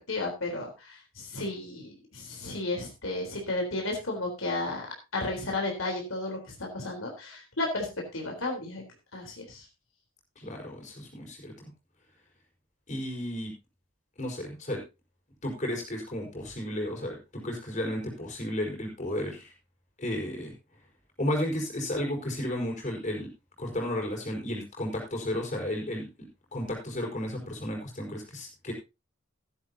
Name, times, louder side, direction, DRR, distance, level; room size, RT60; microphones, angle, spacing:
voice 1, 0.1-4.9 5.1-8.8 9.1-9.6, left 2 dB, 80° left, 1 dB, 3.8 m, -33 dB
voice 2, 10.4-11.5 12.9-13.5 14.2-14.8 15.4-17.2 17.4-19.5 20.0-20.5 21.2-23.3 23.6-28.7, left 1 dB, 40° left, 1 dB, 5.0 m, -33 dB
14.5 x 11.5 x 2.8 m, 0.26 s
head